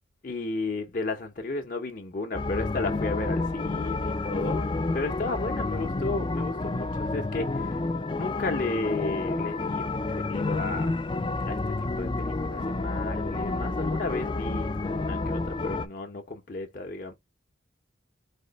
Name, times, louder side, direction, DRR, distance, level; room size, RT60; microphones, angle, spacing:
voice 1, 0.2-4.6 4.9-7.7 8.1-10.9 11.4-11.6 12.0-17.1, left 3 dB, 45° left, 0.8 m, -33 dB
sound 1, 2.3-15.9, left 3 dB, 25° left, 0.4 m, -29 dB
4.3 x 2.9 x 4.0 m
head